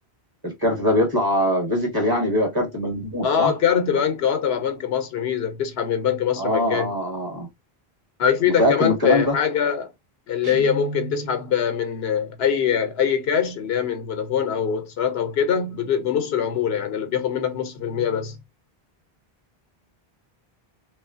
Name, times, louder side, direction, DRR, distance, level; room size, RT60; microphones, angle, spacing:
voice 1, 0.4-3.5 6.4-7.5 8.6-9.3, left 1 dB, 20° right, 0.9 m, -22 dB
voice 2, 3.2-6.9 8.2-9.9 10.3-18.4, left 8 dB, 75° left, 0.9 m, -23 dB
Guitar, 10.4-11.6, right 2 dB, 70° right, 0.9 m, -33 dB
3.0 x 2.3 x 2.5 m
omnidirectional pair, 1.1 m